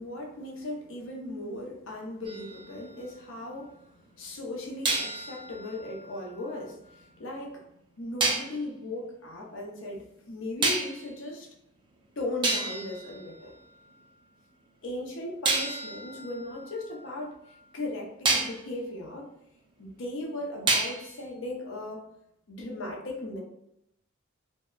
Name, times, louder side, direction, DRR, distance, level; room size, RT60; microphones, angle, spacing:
voice 1, 0.0-3.8 4.1-7.6 8.0-11.5 12.2-13.5 14.8-17.3 17.7-19.3 19.8-22.0 22.5-23.4, left 1 dB, 65° left, -1 dB, 0.6 m, -37 dB
sound 1, 2.2-3.7 4.8-7.0 8.2-8.6 10.6-11.2 11.9-12.0 12.4-14.1 15.4-17.6 18.2-18.7 20.7-21.2, right 3 dB, 25° right, 0.4 m, -31 dB
2.7 x 2.1 x 2.3 m, 0.80 s
head